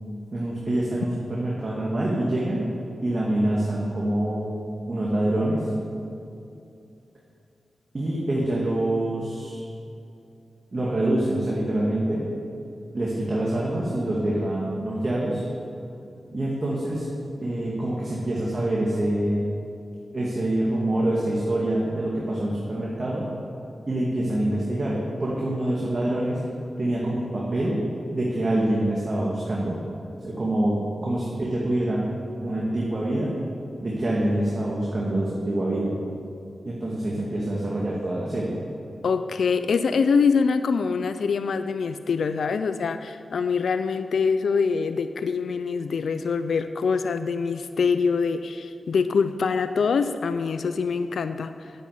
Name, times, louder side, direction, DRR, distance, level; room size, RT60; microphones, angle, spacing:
voice 1, 0.3-2.6 3.0-4.5 4.9-5.7 7.9-9.6 10.7-12.3 12.9-15.4 16.3-17.1 17.4-19.5 20.1-23.3 23.9-26.4 26.8-27.8 28.1-29.8 30.2-30.8 31.0-32.1 32.4-33.3 33.8-35.9 36.7-38.5, right 1 dB, 45° right, -5 dB, 2.3 m, -25 dB
voice 2, 39.0-51.7, left 5 dB, 85° left, 10 dB, 0.4 m, -24 dB
10.0 x 8.5 x 8.2 m, 2.6 s
cardioid pair, 45°, 0 cm